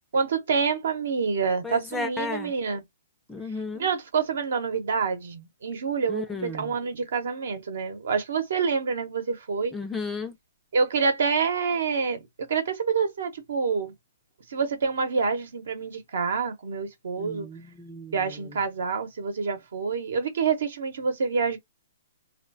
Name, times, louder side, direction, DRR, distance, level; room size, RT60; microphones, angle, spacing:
voice 1, 0.1-2.8 3.8-9.7 10.7-12.2 12.5-13.9 14.5-17.5 18.1-21.6, right 5 dB, 70° right, 0.9 m, -27 dB
voice 2, 1.6-2.5 3.3-3.9 6.1-6.7 9.7-10.3 17.2-18.2, left 3 dB, 10° left, 0.4 m, -34 dB
2.3 x 2.1 x 2.6 m
hypercardioid pair, 145°, 0 cm